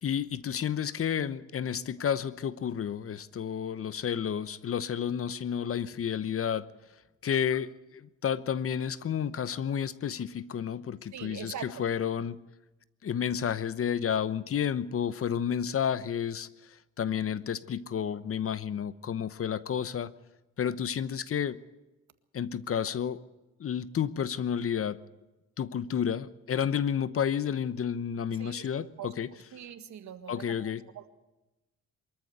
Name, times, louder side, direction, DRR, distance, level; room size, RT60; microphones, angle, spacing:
voice 1, 0.0-6.7 7.2-12.4 13.0-20.1 20.6-21.6 22.3-23.2 23.6-25.0 25.6-29.3 30.3-30.8, left 8 dB, 50° left, 1.0 m, -31 dB
voice 2, 11.1-11.8 28.4-29.1 29.5-31.1, right 9 dB, 65° right, 2.0 m, -43 dB
23.5 x 14.0 x 8.0 m
cardioid pair, 90°, 30 cm